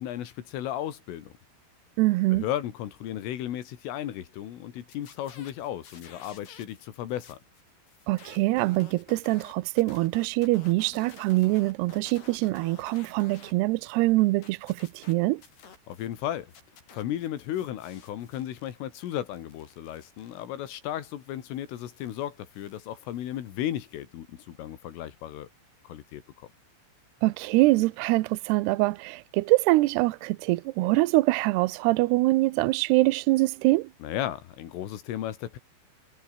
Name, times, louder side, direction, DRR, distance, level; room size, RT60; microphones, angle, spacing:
voice 1, 0.0-1.3 2.3-7.4 15.9-16.5 16.9-25.5 25.8-26.5 34.0-35.6, left 12 dB, 80° left, 4.8 m, -35 dB
voice 2, 2.0-2.4 8.1-15.4 27.2-33.9, right 20 dB, 85° right, 2.3 m, -24 dB
sound 1, 4.8-6.8 7.1-13.5 13.9-16.2 16.5-24.0, left 6 dB, 55° left, 6.5 m, -53 dB
omnidirectional pair, 5.8 m